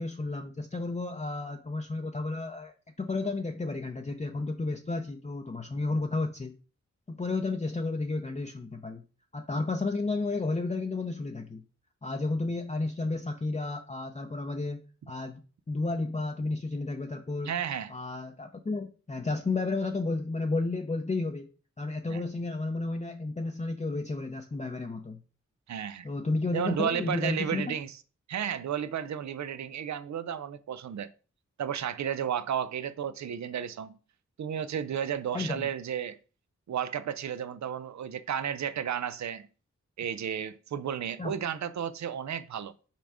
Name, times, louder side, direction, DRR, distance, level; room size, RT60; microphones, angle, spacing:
voice 1, 0.0-6.6 7.1-9.0 9.3-11.6 12.0-15.4 15.7-17.5 17.9-21.5 21.8-25.2 26.0-27.7 35.3-35.6 41.2-41.3, left 3 dB, 25° left, 0.6 m, -32 dB
voice 2, 17.4-17.9 22.1-22.2 25.7-26.1 26.5-28.0 28.3-31.1 31.6-34.0 34.4-36.2 36.7-39.5 40.0-42.7, right 8 dB, 70° right, 0.5 m, -33 dB
5.6 x 3.6 x 4.8 m
cardioid pair, 65°, 29 cm